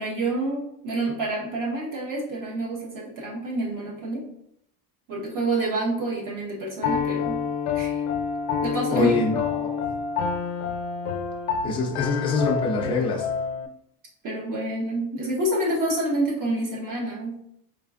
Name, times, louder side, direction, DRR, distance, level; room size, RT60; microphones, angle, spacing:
voice 1, 0.0-4.3 5.1-7.5 7.7-8.0 8.6-9.1 14.2-17.4, right 2 dB, 40° right, -2 dB, 1.2 m, -28 dB
Piano, 6.8-13.7, left 6 dB, 80° left, 0.6 m, -28 dB
voice 2, 8.9-9.9 11.6-13.3, left 3 dB, 10° left, -2 dB, 0.4 m, -25 dB
4.1 x 3.2 x 2.4 m, 0.73 s
cardioid pair, 155°, 50 cm